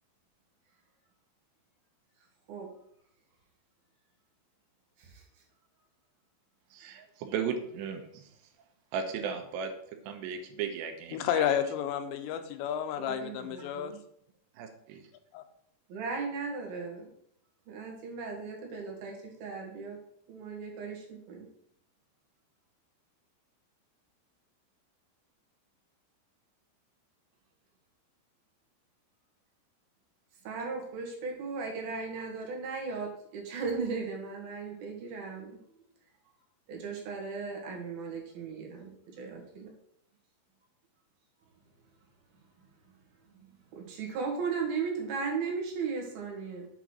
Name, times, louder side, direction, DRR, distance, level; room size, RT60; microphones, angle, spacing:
voice 1, 6.7-8.3 8.9-9.7 10.1-11.5 14.6-15.0, right 6 dB, 85° right, 5 dB, 2.9 m, -36 dB
voice 2, 11.1-13.9 15.3-15.4, left 9 dB, 90° left, 8 dB, 3.1 m, -31 dB
voice 3, 13.0-14.0 15.9-17.1 17.7-20.0 20.3-21.5 30.4-35.5 36.7-39.7 43.4-46.7, right 5 dB, 65° right, 0 dB, 3.1 m, -37 dB
7.9 x 4.0 x 6.1 m, 0.71 s
omnidirectional pair, 5.0 m